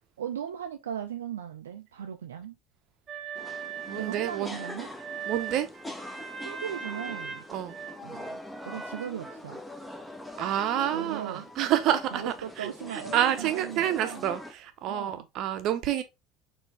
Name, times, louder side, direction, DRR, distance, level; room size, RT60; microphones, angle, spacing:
voice 1, 0.2-2.6 3.9-5.0 6.4-7.4 8.0-8.4 8.7-9.6 10.9-11.5 12.1-14.3 14.9-15.3, right 9 dB, 70° right, 0.4 m, -38 dB
sound 1, 3.1-9.4, right 6 dB, 30° right, 0.9 m, -40 dB
sound 2, 3.4-14.5, left 1 dB, 5° left, 0.9 m, -43 dB
voice 2, 3.9-4.6 5.3-5.7 7.5-7.8 10.4-16.0, right 11 dB, 50° right, 0.7 m, -28 dB
4.3 x 3.3 x 3.2 m
figure-of-eight pair, 65°, 0 cm